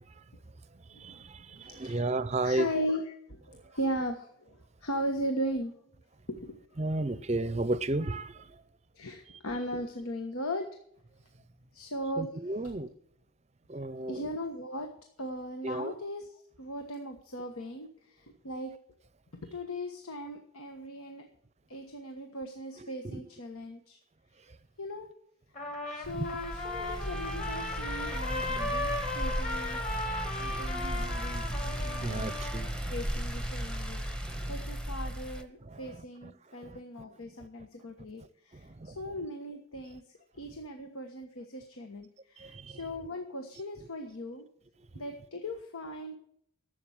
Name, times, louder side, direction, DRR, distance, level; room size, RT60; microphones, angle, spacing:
voice 1, 1.0-2.7 6.8-8.3 12.2-12.9 13.7-14.3 15.6-15.9 23.0-23.2 26.1-26.2 30.5-30.6 31.3-31.4 32.0-32.9 34.3-34.5 35.7-35.8 38.8-38.9 42.4-42.6, right 2 dB, 30° right, 0.6 m, -33 dB
voice 2, 1.6-2.1 2.4-5.7 6.3-6.5 8.9-10.6 11.7-12.7 14.1-14.9 15.2-18.7 19.5-21.2 21.7-24.0 24.8-25.1 25.9-29.9 30.4-40.0 40.4-44.4 44.9-46.2, equal, 85° left, 1.4 m, -38 dB
Trumpet, 25.5-32.7, left 2 dB, 35° left, 2.3 m, -36 dB
sound 1, 26.0-35.4, equal, 5° left, 0.9 m, -36 dB
12.5 x 7.8 x 7.3 m
head